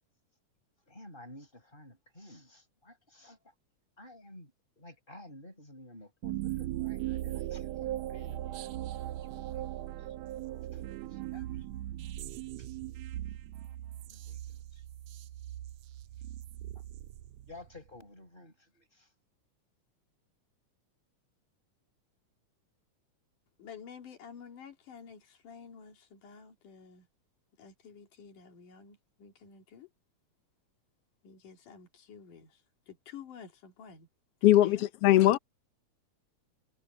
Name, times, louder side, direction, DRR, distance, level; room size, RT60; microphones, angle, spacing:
voice 1, 0.9-3.4 4.0-8.7 9.1-9.6 10.7-12.7 14.1-14.8 16.8-16.9 17.5-19.1, left 1 dB, 15° left, 5.9 m, -53 dB
sound 1, 6.2-17.8, right 14 dB, 75° right, 1.7 m, -39 dB
voice 2, 23.6-27.1 27.6-29.9 31.2-32.5 32.9-34.1 34.5-34.9, left 7 dB, 85° left, 4.2 m, -50 dB
voice 3, 34.4-35.4, left 14 dB, 70° left, 1.5 m, -21 dB
omnidirectional pair, 3.6 m